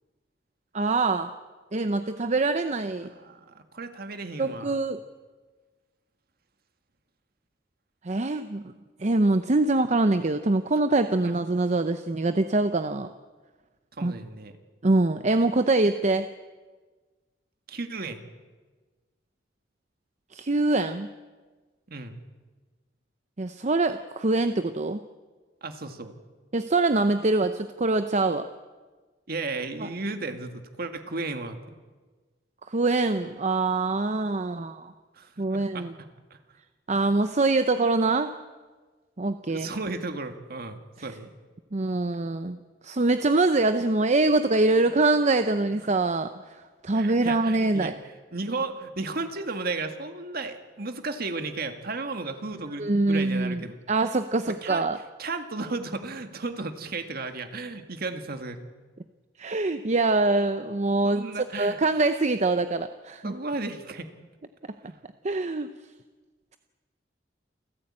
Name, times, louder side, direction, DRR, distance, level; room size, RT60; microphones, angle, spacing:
voice 1, 0.7-1.3 1.7-3.1 4.4-5.0 8.0-8.7 9.0-13.1 14.0-14.1 14.8-16.3 20.3-21.1 23.4-25.0 26.5-28.5 29.8-29.9 32.7-34.9 35.4-35.9 36.9-38.3 39.2-39.7 41.7-42.6 42.8-46.3 46.8-47.9 52.8-53.6 53.9-55.0 59.4-61.2 61.6-63.3 65.2-65.7, right 2 dB, 40° right, 10 dB, 0.7 m, -24 dB
voice 2, 3.0-4.8 11.2-11.3 13.9-14.5 17.7-18.2 21.9-22.2 25.6-26.2 29.3-31.8 35.1-35.9 36.3-36.4 39.5-41.3 46.9-53.8 54.5-54.9 55.2-58.7 61.0-61.8 63.2-64.1 64.8-65.0, right 3 dB, 55° right, 7 dB, 2.0 m, -34 dB
29.0 x 14.0 x 8.8 m, 1.4 s
head